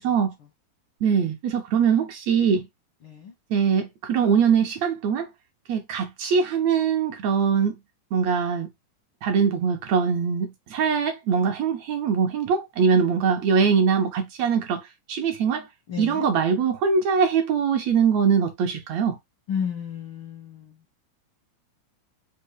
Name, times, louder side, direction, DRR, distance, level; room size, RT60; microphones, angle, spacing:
voice 1, 1.0-2.7 3.5-5.3 5.7-7.8 8.1-8.7 9.2-15.7 16.0-19.2, right 6 dB, 75° right, 1.7 m, -22 dB
voice 2, 15.9-16.3 19.5-20.7, left 7 dB, 75° left, 1.2 m, -32 dB
5.4 x 2.1 x 4.6 m
omnidirectional pair, 3.6 m